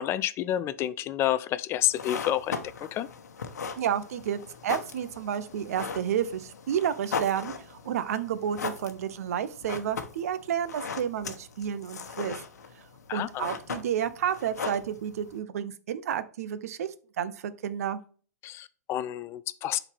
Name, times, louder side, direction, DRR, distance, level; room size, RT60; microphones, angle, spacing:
voice 1, 0.0-2.6 2.9-3.1 13.1-13.5 18.4-19.8, left 12 dB, 30° left, 0.4 m, -29 dB
sound 1, 1.8-15.4, left 5 dB, 75° left, 1.0 m, -39 dB
voice 2, 3.8-12.4 12.8-12.9 13.1-18.0, right 9 dB, 65° right, 0.7 m, -31 dB
7.0 x 4.0 x 3.4 m
hypercardioid pair, 110°, 9 cm